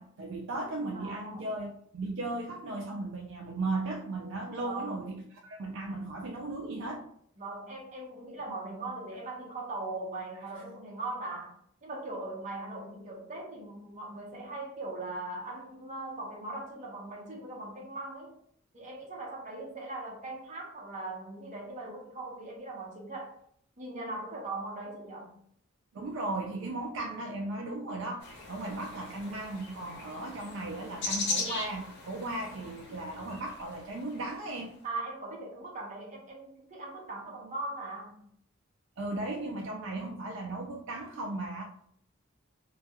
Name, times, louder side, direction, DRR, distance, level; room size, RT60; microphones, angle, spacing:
voice 1, 0.0-7.1 25.9-34.7 39.0-41.6, right 2 dB, 60° right, 0 dB, 0.3 m, -36 dB
voice 2, 0.9-1.5 4.6-5.2 7.4-18.3 18.7-23.3 23.8-25.4 34.8-38.2, right 2 dB, 35° right, -2 dB, 0.7 m, -40 dB
sound 1, 28.2-34.4, left 3 dB, 55° left, 0.6 m, -39 dB
2.2 x 2.2 x 2.8 m, 0.67 s
head